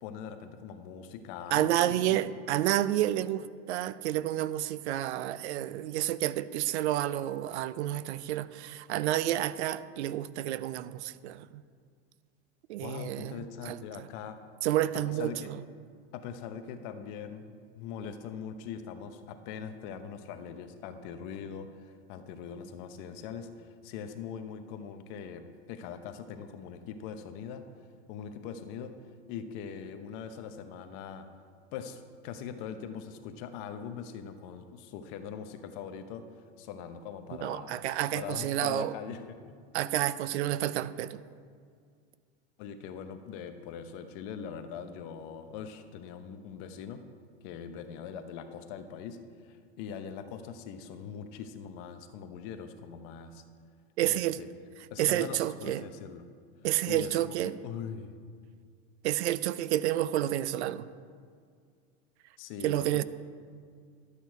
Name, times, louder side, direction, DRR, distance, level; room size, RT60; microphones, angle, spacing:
voice 1, 0.0-2.2 12.8-14.4 15.0-15.5 16.1-27.6 28.1-28.9 29.3-31.3 31.7-36.2 36.6-37.8 38.1-39.5 42.6-47.0 47.4-53.4 54.0-54.4 54.9-56.3 56.9-58.2 62.4-63.0, left 7 dB, 50° left, 8 dB, 0.9 m, -42 dB
voice 2, 1.5-11.6 12.7-14.1 14.6-15.6 37.4-38.9 39.7-41.2 54.0-54.4 55.0-55.9 56.6-57.5 59.0-60.9 62.6-63.0, right 13 dB, 75° right, 16 dB, 0.6 m, -30 dB
12.0 x 8.4 x 4.7 m, 2.1 s
supercardioid pair, 145°, 34 cm